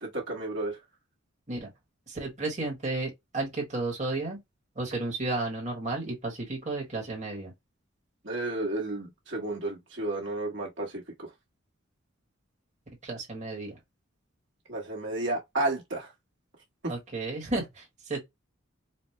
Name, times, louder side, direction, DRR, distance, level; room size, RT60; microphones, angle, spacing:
voice 1, 0.0-0.8 8.2-11.0 14.7-16.1, right 2 dB, 60° right, 1.4 m, -32 dB
voice 2, 2.1-4.4 4.7-7.5 13.0-13.8 16.9-18.2, right 2 dB, 35° right, 1.3 m, -33 dB
4.2 x 2.1 x 3.2 m
head